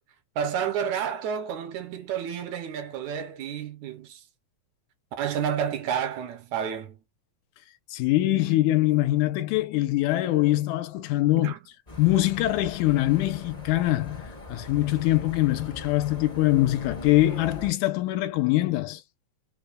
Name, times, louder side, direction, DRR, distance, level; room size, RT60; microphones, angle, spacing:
voice 1, 0.4-4.2 5.2-7.0 11.4-11.6, right 8 dB, 75° right, 2.1 m, -30 dB
voice 2, 7.9-11.5 12.0-14.2 14.5-19.0, left 16 dB, 90° left, 2.1 m, -23 dB
sound 1, 11.9-17.7, left 1 dB, 40° left, 0.5 m, -42 dB
4.8 x 2.1 x 2.4 m
omnidirectional pair, 3.5 m